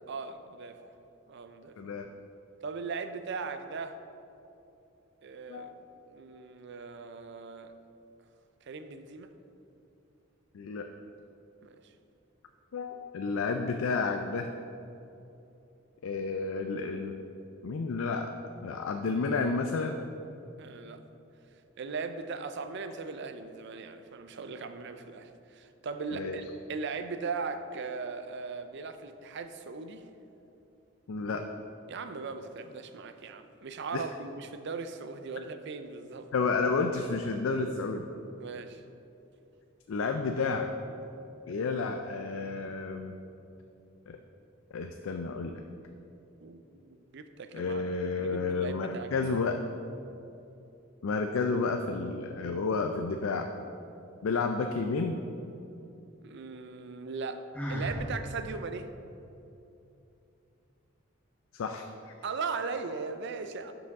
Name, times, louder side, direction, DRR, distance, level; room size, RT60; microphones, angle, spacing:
voice 1, 0.1-0.8 1.3-1.7 2.6-4.0 5.2-5.8 6.1-7.7 8.7-9.3 11.6-11.8 20.6-21.0 21.8-30.0 31.9-36.3 38.4-38.8 46.4-47.8 48.2-49.4 56.2-57.4 57.7-58.9 62.2-63.7, right 4 dB, 60° right, 9 dB, 0.5 m, -38 dB
voice 2, 1.8-2.1 5.5-5.7 10.5-10.9 12.7-14.5 16.0-17.2 17.6-18.3 18.6-20.0 26.1-26.4 31.1-31.4 33.9-34.0 36.3-38.1 39.9-40.7 41.5-43.1 44.1-44.2 44.7-45.6 47.5-49.6 51.0-53.5 54.2-55.2 61.5-61.8, left 4 dB, 85° left, 5 dB, 0.4 m, -31 dB
Sigh, 57.5-58.1, equal, 5° left, 1.0 m, -33 dB
11.5 x 4.9 x 3.5 m, 2.8 s
head